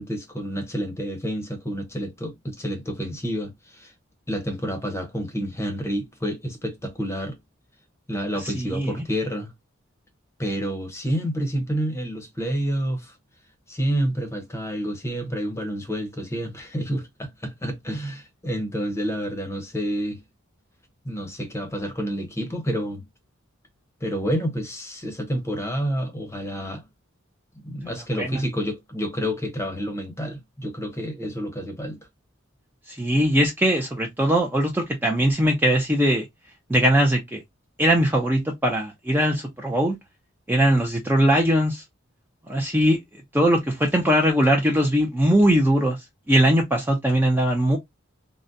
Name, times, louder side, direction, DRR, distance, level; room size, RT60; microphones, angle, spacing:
voice 1, 0.0-3.9 4.3-7.4 8.1-9.5 10.4-13.2 13.7-20.2 21.0-23.0 24.0-26.8 27.6-32.0, equal, 15° left, 0.7 m, -29 dB
voice 2, 8.4-8.9 28.1-28.4 32.9-36.3 36.7-37.4 37.8-40.0 40.5-41.8 42.5-43.0 43.3-46.0 46.3-47.8, equal, 10° right, 0.4 m, -20 dB
3.7 x 2.1 x 2.6 m
head